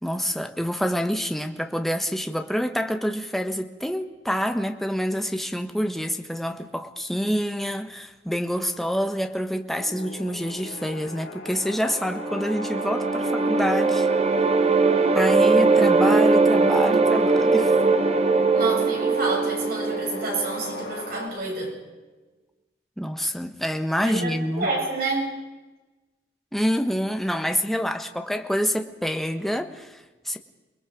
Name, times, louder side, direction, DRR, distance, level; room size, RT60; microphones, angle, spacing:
voice 1, 0.0-14.1 15.1-17.7 23.0-24.7 26.5-30.4, equal, ahead, 6 dB, 1.4 m, -27 dB
sound 1, 9.8-21.3, left 1 dB, 65° left, 5.4 m, -39 dB
sound 2, 11.8-21.0, right 3 dB, 35° right, 1.3 m, -21 dB
voice 2, 18.5-21.7 24.0-25.3, right 2 dB, 55° right, -1 dB, 7.8 m, -29 dB
29.0 x 20.5 x 5.2 m, 1.2 s
head